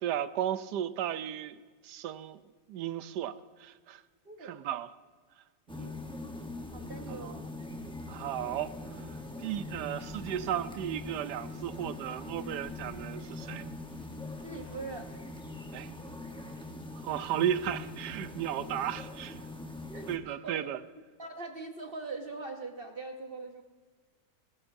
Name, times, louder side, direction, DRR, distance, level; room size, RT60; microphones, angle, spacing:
voice 1, 0.0-2.4 2.7-4.0 4.4-4.9 5.7-5.9 7.1-7.4 8.1-8.7 9.1-13.7 15.7-15.9 17.0-19.5 20.1-20.8, right 10 dB, 80° right, 14 dB, 1.2 m, -35 dB
sound 1, 5.7-20.2, left 2 dB, 5° left, 0.5 m, -42 dB
voice 2, 6.7-7.4 14.4-15.1 19.9-20.7 21.2-23.6, right 3 dB, 45° right, 4 dB, 0.8 m, -42 dB
Printer, 7.4-19.5, left 1 dB, 55° left, 4.7 m, -59 dB
18.0 x 15.5 x 2.6 m, 1.5 s
omnidirectional pair, 1.8 m